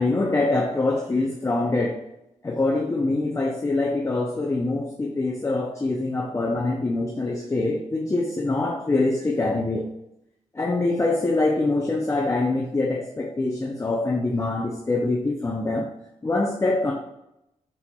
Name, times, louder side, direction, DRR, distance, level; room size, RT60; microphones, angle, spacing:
voice 1, 0.0-2.0 2.4-9.9 10.5-15.9 16.2-16.9, left 2 dB, 20° left, -1 dB, 0.5 m, -24 dB
4.3 x 4.1 x 2.3 m, 0.86 s
cardioid pair, 90°, 13 cm